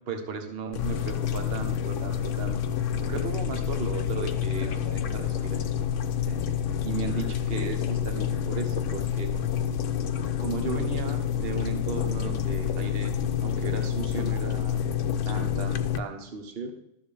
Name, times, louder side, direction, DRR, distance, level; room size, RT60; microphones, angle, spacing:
voice 1, 0.1-2.6 3.1-5.7 6.3-6.4 6.8-9.3 10.4-13.1 13.4-14.8 15.2-16.7, right 5 dB, 50° right, 5 dB, 1.3 m, -35 dB
sound 1, 0.7-16.0, left 9 dB, 70° left, 1.0 m, -28 dB
12.5 x 6.9 x 3.4 m, 0.81 s
omnidirectional pair, 1.4 m